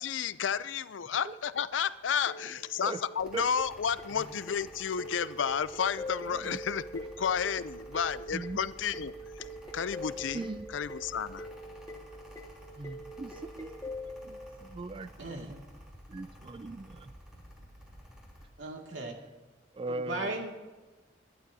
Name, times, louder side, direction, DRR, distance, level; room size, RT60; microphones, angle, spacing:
voice 1, 0.0-9.5 9.7-10.5 10.7-11.5, left 7 dB, 90° left, 0.5 m, -32 dB
sound 1, 2.3-14.6, equal, 15° left, 1.1 m, -44 dB
Mechanical fan, 3.2-18.5, equal, 5° right, 3.0 m, -52 dB
voice 2, 10.3-10.7 12.8-13.7 14.2-15.5 16.1-17.1 19.7-20.4, right 3 dB, 25° right, 0.3 m, -39 dB
voice 3, 15.2-15.6 17.3-17.7 18.6-19.1 19.9-20.5, right 2 dB, 85° right, 2.2 m, -38 dB
22.0 x 11.0 x 2.7 m
head